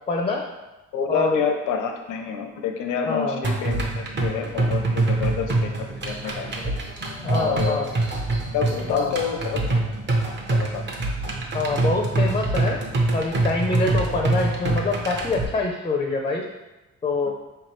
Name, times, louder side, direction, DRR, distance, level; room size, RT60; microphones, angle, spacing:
voice 1, 0.1-0.5 1.1-1.4 3.1-3.4 7.2-7.9 8.9-9.1 11.5-12.8 13.1-16.4 17.0-17.3, left 3 dB, 20° left, 1 dB, 0.4 m, -25 dB
voice 2, 0.9-5.7 6.0-6.5 7.3-7.8 8.5-9.6 10.5-10.8 17.2-17.3, left 6 dB, 90° left, 4 dB, 0.6 m, -28 dB
sound 1, 3.4-15.4, right 2 dB, 35° right, 0.8 m, -25 dB
4.6 x 3.0 x 3.0 m, 1.1 s
cardioid pair, 90°, 30 cm